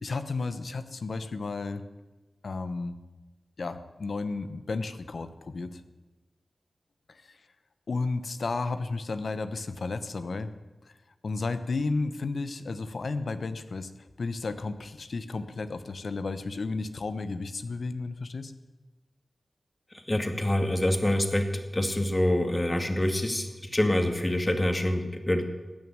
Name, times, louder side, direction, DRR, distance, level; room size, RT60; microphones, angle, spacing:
voice 1, 0.0-1.8 2.4-3.0 3.6-5.8 7.1-7.4 7.9-10.5 11.2-13.9 14.2-18.5, left 3 dB, 75° left, 11 dB, 1.1 m, -33 dB
voice 2, 19.9-25.4, left 1 dB, 25° left, 6 dB, 2.2 m, -26 dB
15.5 x 9.5 x 8.9 m, 1.2 s
cardioid pair, 45°, 0 cm